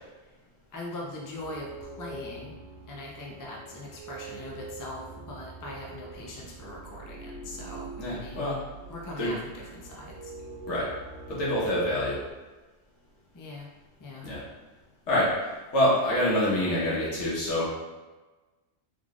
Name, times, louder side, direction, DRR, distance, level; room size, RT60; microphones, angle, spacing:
voice 1, 0.7-1.7 2.0-2.5 2.9-8.5 8.9-10.3 13.3-13.6 14.0-14.3, left 2 dB, 30° left, -2 dB, 0.4 m, -41 dB
sound 1, 1.3-12.3, right 3 dB, 60° left, 1.6 m, -44 dB
voice 2, 8.0-8.6 9.2-9.3 10.7-10.9 11.3-12.2 14.2-14.4 15.1-17.7, left 1 dB, 80° left, -8 dB, 1.5 m, -26 dB
3.6 x 3.3 x 2.4 m, 1.2 s
omnidirectional pair, 1.2 m